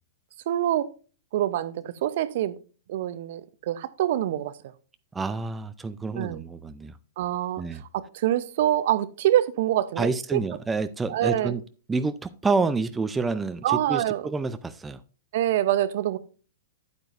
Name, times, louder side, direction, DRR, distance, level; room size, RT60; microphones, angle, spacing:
voice 1, 0.5-0.9 1.3-2.6 2.9-4.5 6.2-6.4 7.2-7.6 7.9-10.4 11.1-11.5 13.6-14.3 15.3-16.2, right 12 dB, 55° right, 0.7 m, -25 dB
voice 2, 5.1-7.0 7.6-7.8 10.0-11.6 11.9-15.0, right 4 dB, 10° right, 0.5 m, -28 dB
9.8 x 8.7 x 2.6 m
figure-of-eight pair, 110°, 0 cm